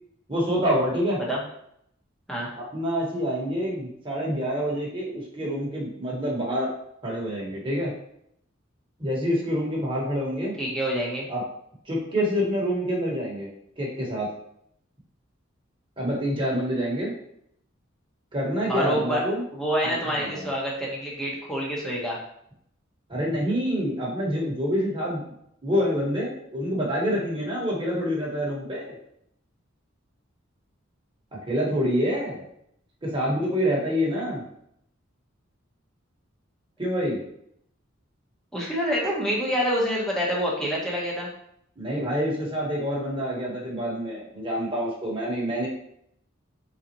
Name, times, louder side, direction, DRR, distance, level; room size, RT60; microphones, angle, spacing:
voice 1, 0.3-1.2 2.6-6.7 7.0-7.9 9.0-10.5 11.3-11.4 11.8-13.5 13.8-14.3 16.0-17.1 18.3-19.4 19.9-20.5 23.1-25.2 25.6-29.0 31.3-32.4 33.0-34.5 36.8-37.2 41.8-45.7, equal, 25° right, -4 dB, 1.5 m, -27 dB
voice 2, 10.6-11.3 18.7-19.2 19.5-22.2 38.5-41.3, equal, 5° left, -5 dB, 1.2 m, -27 dB
4.1 x 4.1 x 3.0 m, 0.71 s
head